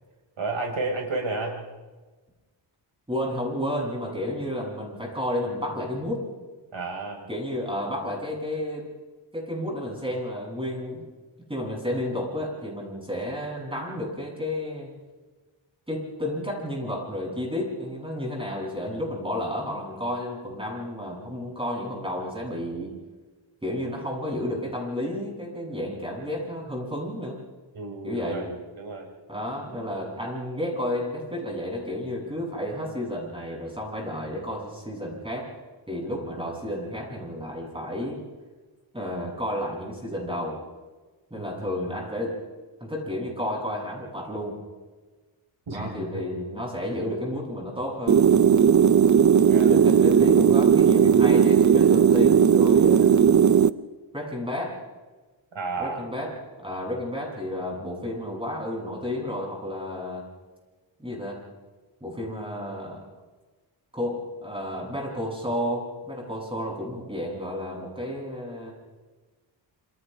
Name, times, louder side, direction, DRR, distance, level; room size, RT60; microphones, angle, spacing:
voice 1, 0.4-1.6 6.7-7.3 27.7-29.1 41.3-41.7 45.7-46.2 49.5-49.8 55.5-56.1, right 3 dB, 70° right, 1 dB, 4.6 m, -32 dB
voice 2, 3.1-6.2 7.3-8.9 9.3-11.1 11.5-14.9 15.9-22.9 23.6-27.4 28.0-28.5 29.3-35.5 35.9-38.2 38.9-40.6 41.3-42.4 42.8-44.6 45.7-48.2 49.7-53.1 54.1-54.7 55.8-60.2 61.0-61.4 62.0-63.0 63.9-68.7, left 1 dB, 10° right, -3 dB, 7.7 m, -31 dB
sound 1, 48.1-53.7, right 7 dB, 40° right, 0.6 m, -17 dB
27.5 x 27.5 x 3.5 m, 1.3 s
wide cardioid pair, 110°, 48 cm